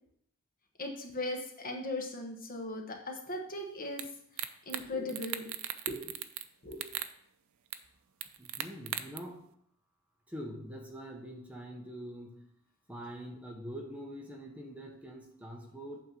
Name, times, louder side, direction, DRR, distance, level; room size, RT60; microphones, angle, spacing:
voice 1, 0.8-4.1 4.3-5.6 5.9-6.2 6.6-6.9, left 1 dB, 40° left, 2 dB, 1.2 m, -38 dB
sound 1, 4.0-4.1 4.4-4.8 5.1-6.5 6.7-7.1 7.7-7.8 8.2-9.2, right 12 dB, 65° right, 0.5 m, -37 dB
voice 2, 8.4-9.4 10.3-12.4 12.9-16.0, equal, 5° right, 0 dB, 0.9 m, -44 dB
8.4 x 3.8 x 6.1 m, 0.71 s
head